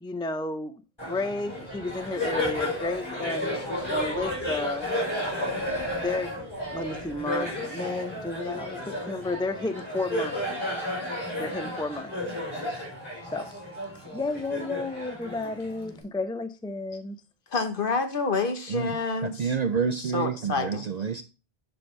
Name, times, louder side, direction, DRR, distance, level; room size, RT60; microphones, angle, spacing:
voice 1, 0.0-0.8 1.1-3.6 3.9-4.9 6.0-6.4 6.7-10.4 11.4-12.1 13.3-13.5 14.1-17.2, left 2 dB, 5° left, 0.4 m, -32 dB
Laughter, 1.0-16.0, left 1 dB, 25° left, 4.7 m, -32 dB
voice 2, 17.5-19.5 20.0-20.9, left 4 dB, 60° left, 1.3 m, -28 dB
voice 3, 19.2-21.2, right 6 dB, 50° right, 0.5 m, -28 dB
11.0 x 4.4 x 3.2 m
omnidirectional pair, 1.0 m